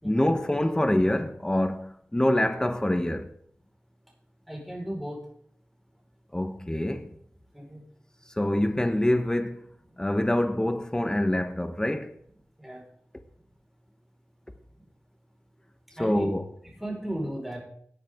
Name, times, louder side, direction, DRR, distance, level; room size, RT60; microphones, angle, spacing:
voice 1, 0.0-3.3 6.3-7.1 8.3-9.7 10.0-12.1 16.0-16.4, left 1 dB, 15° left, 1.2 m, -25 dB
voice 2, 4.5-5.2 7.5-7.8 12.6-12.8 16.0-16.3 16.8-17.6, right 1 dB, ahead, 5.2 m, -34 dB
17.0 x 9.8 x 3.8 m
wide cardioid pair, 60°, 4 cm